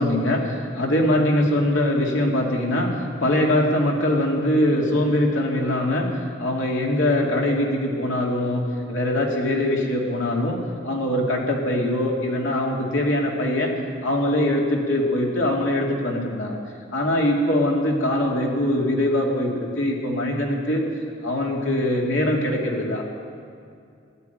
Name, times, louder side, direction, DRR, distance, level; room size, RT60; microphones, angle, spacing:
voice 1, 0.0-2.9 3.2-6.1 6.4-8.6 8.9-10.6 10.8-13.7 14.0-16.6 16.9-20.8 21.2-23.0, left 1 dB, 80° left, -1 dB, 2.7 m, -22 dB
14.0 x 11.0 x 9.4 m, 2.4 s
head